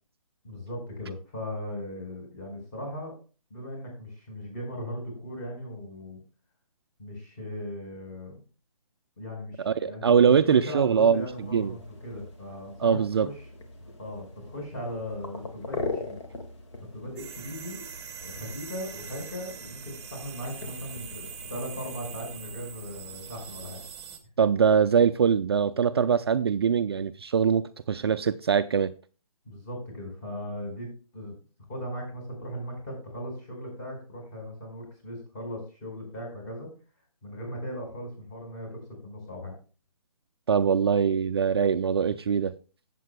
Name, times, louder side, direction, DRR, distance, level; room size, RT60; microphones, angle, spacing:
voice 1, 0.4-3.1 3.5-6.2 7.0-8.4 9.2-13.3 13.8-16.2 16.9-17.8 18.2-23.8 29.4-31.3 31.7-36.7 37.2-39.5, equal, 30° left, 4.8 m, -38 dB
voice 2, 9.6-11.3 11.5-11.8 12.8-13.3 24.4-28.9 40.5-42.5, right 7 dB, 45° right, 0.4 m, -23 dB
sound 1, 11.0-23.9, left 3 dB, 50° left, 1.8 m, -42 dB
sound 2, 17.2-24.2, right 7 dB, 10° right, 1.1 m, -43 dB
15.0 x 7.6 x 2.2 m
figure-of-eight pair, 150°, 19 cm